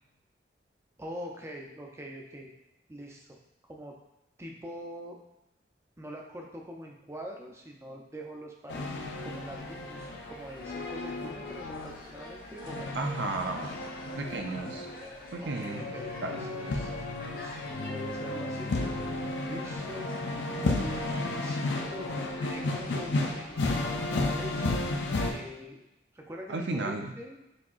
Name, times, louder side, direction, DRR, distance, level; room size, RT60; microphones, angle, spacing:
voice 1, 1.0-2.5 2.9-4.0 4.4-5.2 6.0-13.0 15.4-16.9 17.3-20.1 20.5-24.8 25.2-25.8 26.1-27.4, equal, 15° right, 0 dB, 0.5 m, -44 dB
sound 1, 8.7-25.3, left 2 dB, 85° left, 0.6 m, -33 dB
sound 2, 8.7-23.6, left 2 dB, 50° left, 0.7 m, -48 dB
voice 2, 13.0-13.7 14.2-14.9 15.3-15.9 16.2-16.5 26.5-27.1, right 2 dB, 80° right, 3 dB, 0.6 m, -33 dB
6.1 x 2.8 x 2.4 m, 0.91 s
head